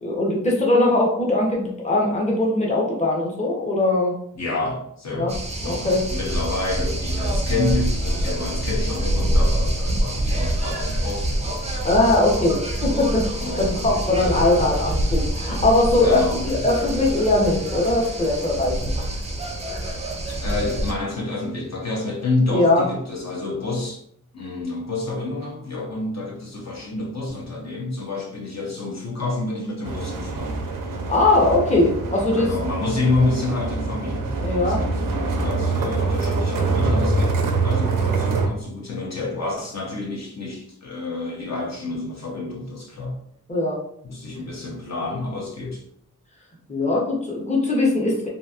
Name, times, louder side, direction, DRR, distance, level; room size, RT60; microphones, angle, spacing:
voice 1, 0.0-4.1 5.1-5.3 5.6-6.0 11.8-13.3 13.6-18.9 22.5-22.9 31.1-32.5 34.4-34.8 43.5-43.8 46.7-48.3, left 2 dB, 20° left, -3 dB, 0.7 m, -20 dB
voice 2, 4.3-11.7 13.4-14.5 15.9-16.6 20.4-24.0 24.3-30.5 32.3-37.4 37.6-43.2 44.0-45.8, left 2 dB, 55° left, -3 dB, 0.7 m, -28 dB
sound 1, 5.3-20.9, right 1 dB, 20° right, 0.5 m, -26 dB
sound 2, 29.8-38.5, right 3 dB, 85° right, 0.5 m, -24 dB
2.9 x 2.6 x 2.4 m, 0.68 s
wide cardioid pair, 95°, 32 cm